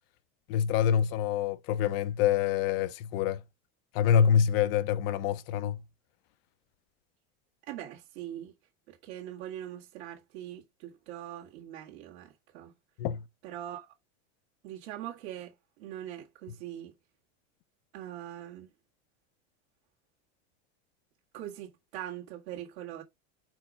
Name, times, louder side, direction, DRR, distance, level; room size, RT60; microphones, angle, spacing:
voice 1, 0.5-3.4 3.9-5.8 13.0-13.2, left 8 dB, 55° left, 0.6 m, -26 dB
voice 2, 7.7-8.5 8.9-12.7 13.4-13.9 14.6-16.9 17.9-18.7 21.3-23.0, right 12 dB, 70° right, 1.9 m, -42 dB
5.3 x 4.5 x 4.9 m
supercardioid pair, 160°, 34 cm